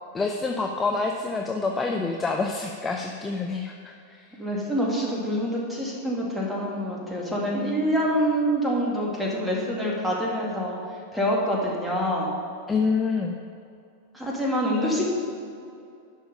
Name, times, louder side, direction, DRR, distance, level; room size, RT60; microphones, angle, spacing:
voice 1, 0.1-3.9 12.7-13.4, left 4 dB, 15° left, 2 dB, 0.6 m, -27 dB
voice 2, 4.4-10.8 11.1-12.3 14.1-15.1, equal, 5° right, -3 dB, 2.1 m, -26 dB
11.0 x 5.6 x 5.5 m, 2.5 s
figure-of-eight pair, 90°, 0 cm